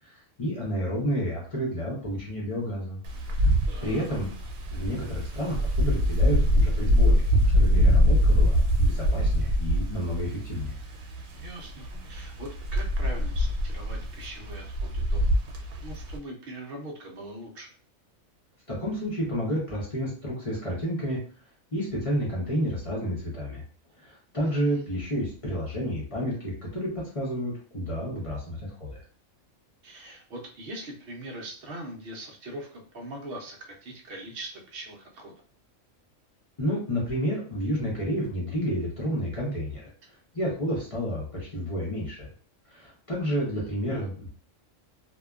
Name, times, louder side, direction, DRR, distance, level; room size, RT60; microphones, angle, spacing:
voice 1, 0.1-3.0 3.3-3.5 3.8-4.3 4.7-7.2 7.5-10.7 18.7-21.2 21.7-23.6 24.0-29.0 36.6-39.8 40.3-42.3 42.7-44.3, equal, 30° left, -5 dB, 0.7 m, -30 dB
Wind, 3.0-16.2, equal, 80° right, 1.0 m, -24 dB
voice 2, 3.7-4.1 11.3-15.3 15.8-17.7 24.4-24.8 29.8-35.3 43.5-43.7, right 1 dB, 60° right, 1 dB, 0.6 m, -41 dB
2.7 x 2.2 x 2.2 m, 0.41 s
omnidirectional pair, 1.4 m